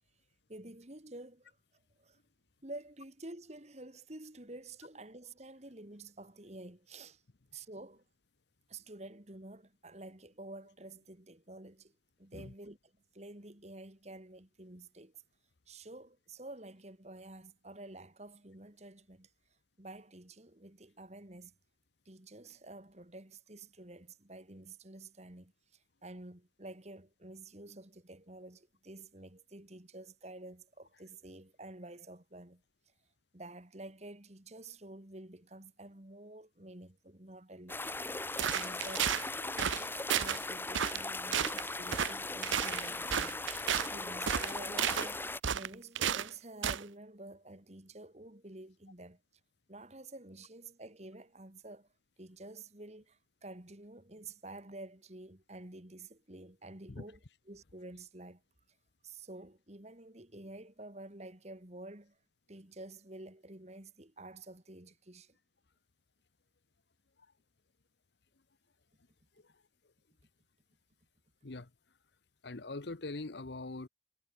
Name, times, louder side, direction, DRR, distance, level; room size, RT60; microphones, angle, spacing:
voice 1, 0.5-1.6 2.0-2.2 2.6-7.2 7.5-8.0 8.7-11.9 12.2-12.8 13.1-15.1 15.7-19.3 19.8-21.5 22.1-32.6 33.3-37.8 38.5-39.2 39.6-49.2 49.7-51.9 52.2-57.2 57.5-58.4 59.0-62.2 62.5-65.4, right 2 dB, 35° right, 2.1 m, -50 dB
sound 1, 37.7-45.4, left 2 dB, 10° left, 1.5 m, -39 dB
sound 2, 38.4-39.2 39.6-39.8 40.1-40.4 40.7-41.0 41.3-41.6 41.9-42.1 42.4-43.9 44.3-45.1 45.4-46.3 46.6-46.8, right 9 dB, 85° right, 0.7 m, -32 dB
voice 2, 72.4-73.9, left 2 dB, 65° left, 1.0 m, -42 dB
head